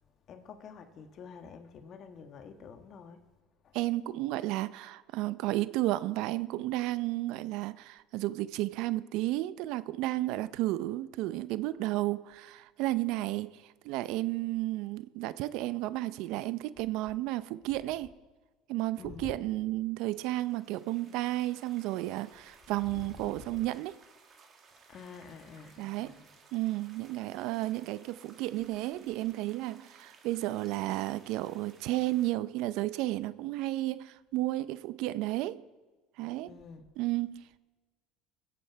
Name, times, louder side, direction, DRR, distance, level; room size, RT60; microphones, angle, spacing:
voice 1, 0.3-3.2 3.6-3.8 19.0-19.4 22.9-23.1 23.4-23.5 24.9-26.3 36.5-36.8, left 6 dB, 45° left, 1.3 m, -48 dB
voice 2, 3.7-18.1 18.7-24.0 25.8-26.2 26.5-35.6 36.2-36.5 37.0-37.6, right 16 dB, 70° right, 0.5 m, -32 dB
sound 1, 20.0-32.3, right 5 dB, 40° right, 2.1 m, -59 dB
21.0 x 7.7 x 4.6 m
supercardioid pair, 100°, 0 cm